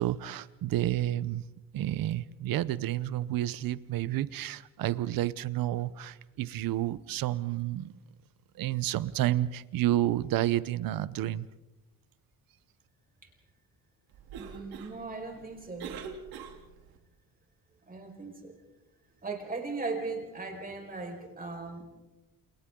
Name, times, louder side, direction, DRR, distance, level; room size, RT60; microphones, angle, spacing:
voice 1, 0.0-1.4 1.7-7.9 8.6-11.5, right 14 dB, 70° right, 0.9 m, -30 dB
Cough, 14.1-17.0, right 6 dB, 90° right, 3.2 m, -44 dB
voice 2, 14.4-16.0 17.9-18.5 19.2-21.8, right 3 dB, 25° right, 5.1 m, -38 dB
29.5 x 29.0 x 3.8 m
cardioid pair, 150°, 36 cm